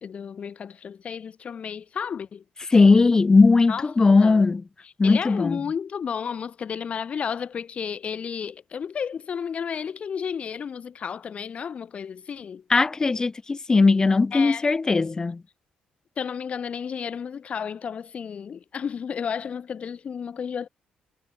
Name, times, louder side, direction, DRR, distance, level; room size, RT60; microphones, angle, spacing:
voice 1, 0.0-2.4 3.7-3.9 4.2-4.5 5.0-12.6 14.3-14.6 16.2-20.7, left 7 dB, 45° left, 2.1 m, -32 dB
voice 2, 2.7-4.6 5.0-5.6 12.7-15.4, left 3 dB, 25° left, 0.6 m, -18 dB
cardioid pair, 105°, 3 cm